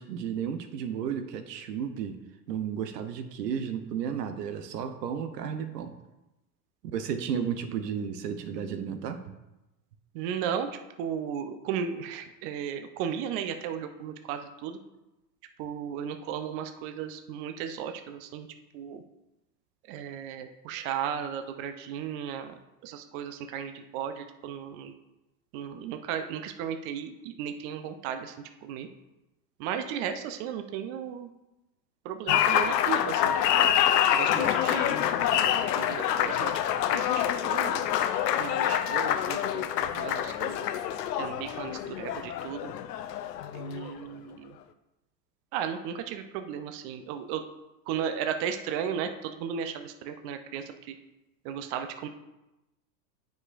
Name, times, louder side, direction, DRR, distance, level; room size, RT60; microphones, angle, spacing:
voice 1, 0.0-2.2 2.5-5.9 6.8-9.2, right 8 dB, 75° right, 8 dB, 0.9 m, -33 dB
voice 2, 10.1-10.7 11.0-14.8 15.6-18.5 18.7-19.0 19.8-24.9 25.5-28.9 29.6-31.3 32.0-33.7 34.1-35.1 35.3-36.5 36.9-37.9 38.4-40.7 41.2-42.7 43.5-44.6 45.5-47.4 47.9-51.0 51.4-52.1, right 8 dB, 45° right, 7 dB, 0.7 m, -35 dB
Applause, 32.3-44.0, left 10 dB, 75° left, 0.6 m, -26 dB
9.4 x 5.0 x 2.5 m, 0.97 s
hypercardioid pair, 95°, 49 cm